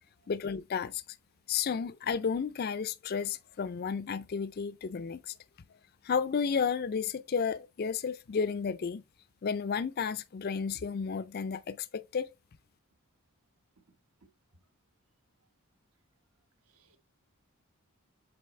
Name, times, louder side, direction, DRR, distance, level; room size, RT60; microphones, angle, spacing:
voice 1, 0.3-1.0 1.5-5.3 6.0-9.0 9.4-12.3, left 6 dB, 45° left, 0.4 m, -32 dB
voice 2, 16.7-17.0, right 4 dB, 75° right, 1.3 m, -65 dB
7.6 x 4.1 x 3.2 m
head